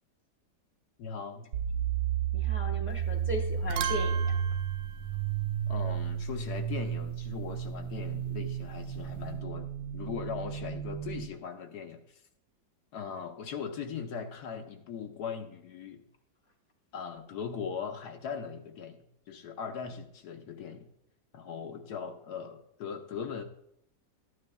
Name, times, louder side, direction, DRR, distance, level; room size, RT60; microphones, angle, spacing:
voice 1, 1.0-1.5 5.7-12.0 12.9-16.0 16.9-20.9 21.3-23.4, left 6 dB, 70° left, 5 dB, 1.2 m, -39 dB
sound 1, 1.5-11.3, right 8 dB, 65° right, 1.0 m, -33 dB
voice 2, 2.3-4.3, left 1 dB, 10° right, 1 dB, 0.9 m, -37 dB
sound 2, 2.9-3.2 3.5-6.1 8.5-9.4, right 9 dB, 85° right, 1.3 m, -39 dB
13.0 x 9.7 x 2.3 m, 0.76 s
omnidirectional pair, 1.9 m